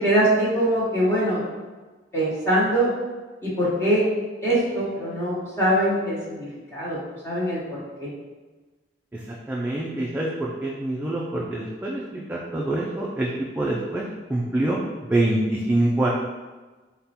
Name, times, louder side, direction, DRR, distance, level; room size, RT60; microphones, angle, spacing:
voice 1, 0.0-1.4 2.1-2.9 3.4-4.0 4.4-7.0 7.2-8.1, right 1 dB, 15° left, -9 dB, 1.2 m, -23 dB
voice 2, 9.5-16.1, right 1 dB, 10° right, -4 dB, 0.3 m, -25 dB
3.7 x 2.2 x 4.2 m, 1.3 s
head